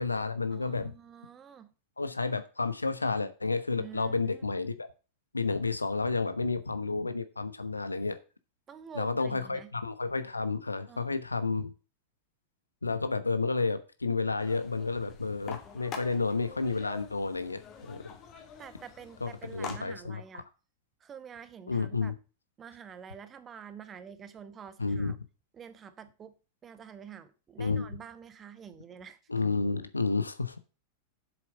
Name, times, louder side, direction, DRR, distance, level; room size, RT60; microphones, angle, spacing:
voice 1, 0.0-0.9 2.0-4.9 5.3-8.2 8.9-11.7 12.8-17.6 17.9-18.0 19.2-20.4 21.7-22.1 24.8-25.1 27.6-27.9 29.3-30.6, left 4 dB, 80° left, 0.9 m, -31 dB
voice 2, 0.5-1.7 3.8-4.4 8.7-9.7 10.9-11.1 12.9-13.0 18.6-20.5 21.0-22.1 22.6-25.2 25.5-26.3 26.6-29.2, right 7 dB, 25° right, 1.2 m, -48 dB
sound 1, 14.4-19.8, left 6 dB, 35° left, 2.2 m, -46 dB
7.7 x 7.4 x 5.4 m
figure-of-eight pair, 90°, 0 cm